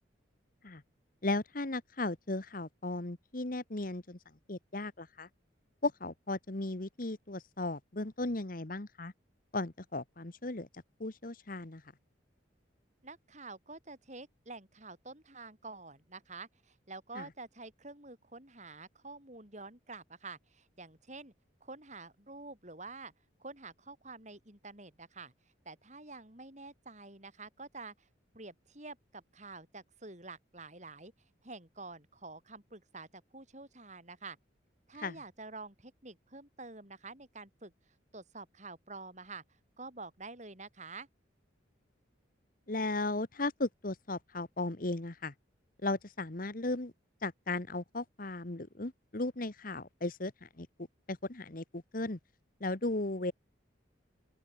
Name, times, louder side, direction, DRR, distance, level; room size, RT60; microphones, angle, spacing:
voice 1, 1.2-4.2 4.5-5.3 5.8-9.1 9.5-11.8 17.1-17.3 35.0-35.2 42.7-45.3 45.8-46.9 47.2-50.7 51.1-52.2 52.6-53.3, left 2 dB, 45° left, 1.3 m, -36 dB
voice 2, 13.0-21.3 21.6-23.1 23.4-25.3 25.7-28.1 28.3-31.1 31.4-34.4 34.9-37.7 38.1-39.4 39.8-41.1, right 3 dB, 40° right, 5.9 m, -48 dB
open air
head